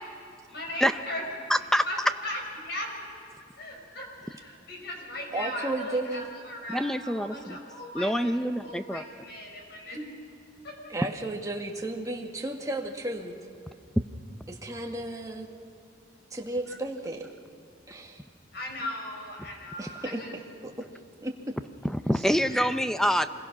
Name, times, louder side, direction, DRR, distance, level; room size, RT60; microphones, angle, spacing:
voice 1, 0.5-1.2 1.6-3.1 3.6-10.1 10.6-10.7 18.5-20.3 22.4-22.6, left 1 dB, 60° left, 1 dB, 5.5 m, -38 dB
voice 2, 1.5-1.8 6.7-7.6 7.9-9.0 21.8-23.3, equal, 5° left, 10 dB, 0.6 m, -26 dB
voice 3, 5.3-6.2 9.8-10.0 10.9-13.3 14.5-15.5 16.3-17.3 17.9-18.2 19.8-20.2 20.6-20.7 21.2-21.3 22.2-22.3, right 2 dB, 20° right, 1 dB, 1.9 m, -33 dB
26.5 x 21.0 x 6.1 m, 2.4 s
head